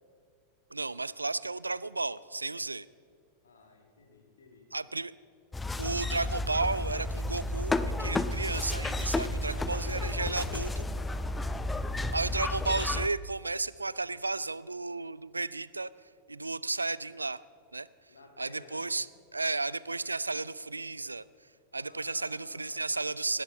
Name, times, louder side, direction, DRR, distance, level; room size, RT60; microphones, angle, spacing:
voice 1, 0.7-2.9 4.7-5.1 5.8-10.8 12.1-15.9 16.3-17.4 17.7-17.9 18.4-19.1 19.3-21.3 21.7-23.4, right 3 dB, 80° right, 19 dB, 0.3 m, -33 dB
voice 2, 3.4-4.7 9.3-12.5 18.1-18.9 21.8-22.9, left 3 dB, 70° left, 2 dB, 2.4 m, -52 dB
sound 1, 5.5-13.1, left 2 dB, 10° left, 0.5 m, -32 dB
18.5 x 10.0 x 5.3 m, 2.3 s
figure-of-eight pair, 90°, 0 cm